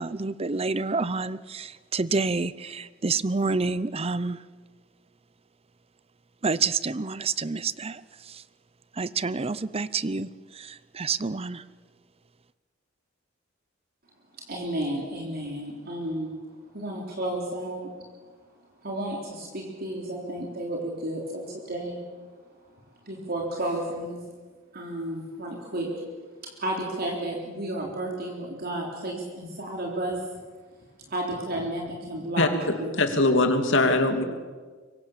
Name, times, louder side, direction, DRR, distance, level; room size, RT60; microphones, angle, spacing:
voice 1, 0.0-4.4 6.4-8.0 8.3-8.4 9.0-11.6, right 4 dB, 30° right, 0.7 m, -28 dB
voice 2, 14.5-16.3 16.7-17.9 18.8-22.0 23.0-24.2 24.7-25.9 26.4-30.2 31.1-32.5 32.8-33.0, right 1 dB, 50° right, 3.7 m, -32 dB
voice 3, 33.0-34.2, left 2 dB, 65° left, 2.9 m, -21 dB
25.5 x 23.5 x 7.4 m
head